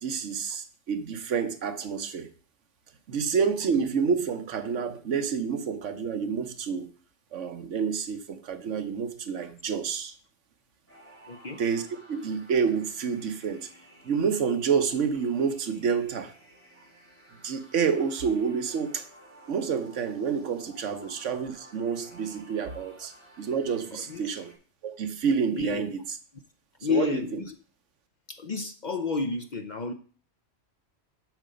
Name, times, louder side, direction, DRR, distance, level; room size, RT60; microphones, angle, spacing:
voice 1, 0.0-2.3 3.1-6.9 7.3-10.1 11.6-11.8 12.1-13.7 14.0-16.3 17.4-19.1 19.5-24.5 24.8-26.0 26.9-27.2, right 6 dB, 75° right, 1.2 m, -28 dB
sound 1, 10.9-24.5, right 1 dB, 10° left, 3.7 m, -54 dB
voice 2, 11.3-11.6 21.0-21.1 23.9-24.2 25.5-25.9 26.8-27.6 28.3-29.9, left 5 dB, 45° left, 0.6 m, -31 dB
8.0 x 6.7 x 5.1 m
omnidirectional pair, 1.3 m